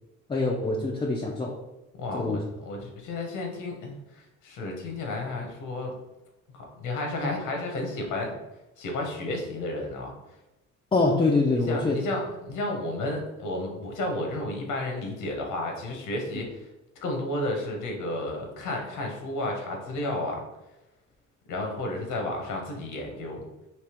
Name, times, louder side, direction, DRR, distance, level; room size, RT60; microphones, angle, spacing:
voice 1, 0.3-1.6 2.1-2.4 7.2-7.3 10.9-12.0, left 3 dB, 20° left, -1 dB, 0.3 m, -25 dB
voice 2, 1.9-5.9 6.5-8.4 8.8-10.1 11.7-16.7 17.0-20.4 21.5-23.5, left 1 dB, 90° left, 2 dB, 0.9 m, -32 dB
3.4 x 2.8 x 2.9 m, 0.98 s
cardioid pair, 110°, 30 cm